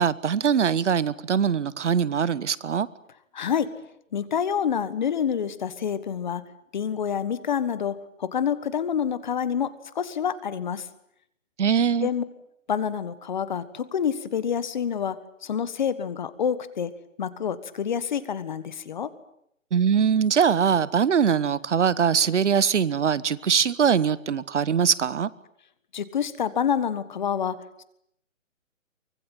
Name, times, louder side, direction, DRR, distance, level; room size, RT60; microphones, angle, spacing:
voice 1, 0.0-2.9 11.6-12.1 19.7-25.3, right 7 dB, 60° right, 19 dB, 1.1 m, -22 dB
voice 2, 3.3-3.7 4.1-6.4 6.7-10.8 12.0-12.2 12.7-15.2 15.4-16.9 17.2-19.1 25.9-27.8, left 8 dB, 35° left, 15 dB, 1.4 m, -27 dB
24.5 x 20.0 x 9.1 m, 0.74 s
hypercardioid pair, 165°, 40 cm